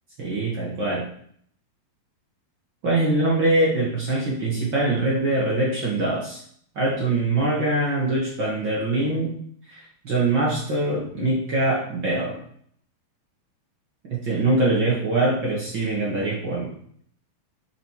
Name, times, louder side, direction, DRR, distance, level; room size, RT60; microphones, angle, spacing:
voice 1, 0.2-1.0 2.8-6.4 6.7-9.3 9.7-12.4 14.1-16.7, right 2 dB, 50° right, -5 dB, 1.4 m, -23 dB
8.9 x 4.9 x 4.7 m, 0.63 s
omnidirectional pair, 4.8 m